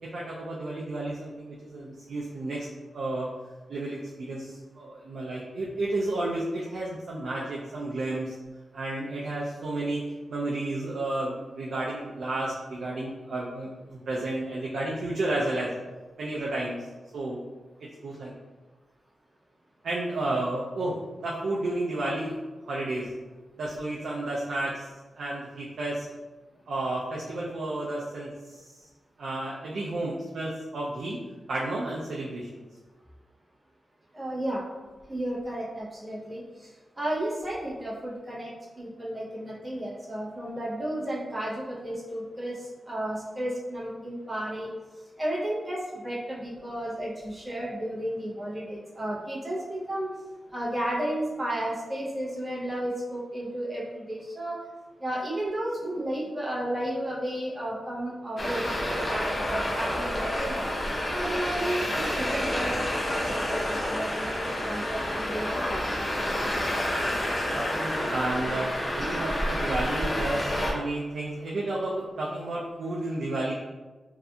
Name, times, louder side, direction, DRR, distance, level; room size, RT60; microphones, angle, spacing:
voice 1, 0.0-2.7 2.9-3.3 3.7-8.3 8.7-15.7 16.2-16.9 17.1-17.4 17.8-18.3 19.8-22.4 22.6-23.1 23.6-26.1 26.7-28.9 29.2-31.2 31.5-32.5 67.5-68.7 68.9-73.5, right 2 dB, 75° right, -5 dB, 0.3 m, -32 dB
voice 2, 34.1-34.6 35.1-36.4 37.0-44.7 45.2-50.1 50.5-54.6 55.0-60.7 61.1-65.9 69.1-69.2, right 1 dB, 15° right, -7 dB, 0.6 m, -33 dB
Traffic noise roadway noise, 58.4-70.7, left 1 dB, 35° left, 0.4 m, -29 dB
2.6 x 2.4 x 2.2 m, 1.3 s
wide cardioid pair, 170°, 0 cm